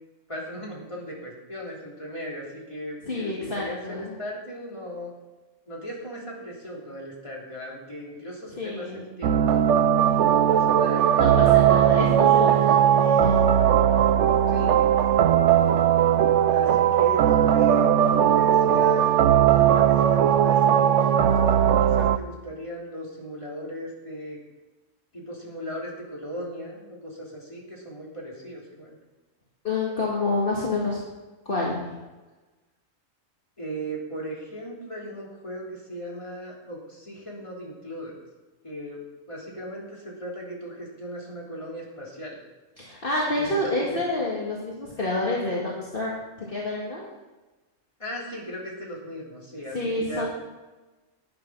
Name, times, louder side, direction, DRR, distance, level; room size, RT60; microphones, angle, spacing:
voice 1, 0.3-5.1 5.7-9.7 10.2-11.8 14.5-15.1 16.5-19.1 19.5-24.4 25.1-28.9 33.6-38.2 38.6-42.4 43.3-44.0 48.0-50.3, equal, 25° left, -4 dB, 3.1 m, -37 dB
voice 2, 3.1-4.2 8.6-9.1 11.2-13.4 29.6-31.0 31.5-31.8 42.8-46.1 46.5-47.1 49.7-50.3, left 2 dB, 40° left, -5 dB, 2.1 m, -28 dB
sound 1, 9.2-22.2, right 10 dB, 70° right, 0.9 m, -19 dB
10.0 x 10.0 x 6.1 m, 1.2 s
omnidirectional pair, 1.4 m